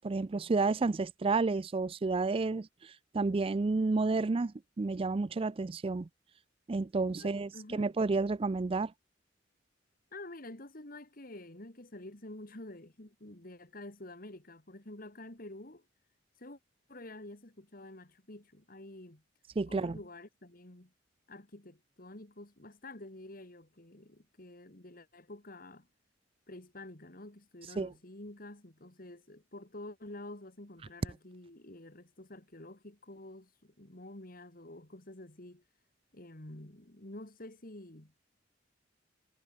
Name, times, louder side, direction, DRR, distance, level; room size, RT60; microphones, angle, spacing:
voice 1, 0.0-6.1 6.7-8.9 19.6-20.0 27.8-27.9, right 3 dB, 30° right, 0.4 m, -31 dB
voice 2, 7.2-7.9 10.1-15.9 16.4-16.6 16.9-19.2 19.7-20.9 21.3-25.9 26.5-35.6 36.1-38.3, left 1 dB, 50° left, 2.6 m, -49 dB
head